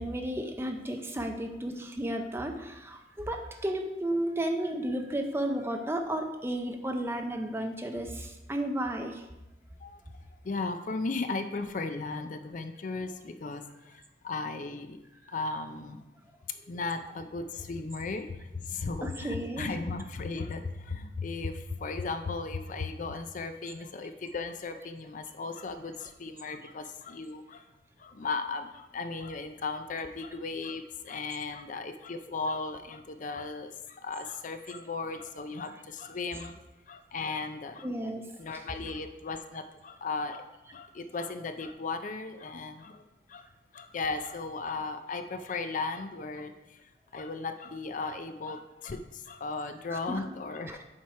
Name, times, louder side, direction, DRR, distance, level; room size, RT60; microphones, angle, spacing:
voice 1, 0.0-9.2 19.0-19.8 37.8-38.6 49.9-50.3 50.7-50.8, right 1 dB, 15° right, 4 dB, 0.6 m, -33 dB
voice 2, 10.4-15.0 15.3-16.1 16.7-27.6 28.0-36.6 36.9-37.9 38.4-40.4 40.7-43.0 43.3-43.5 43.7-46.8 47.1-50.8, left 3 dB, 45° left, 9 dB, 0.5 m, -36 dB
7.3 x 4.5 x 4.7 m, 0.98 s
head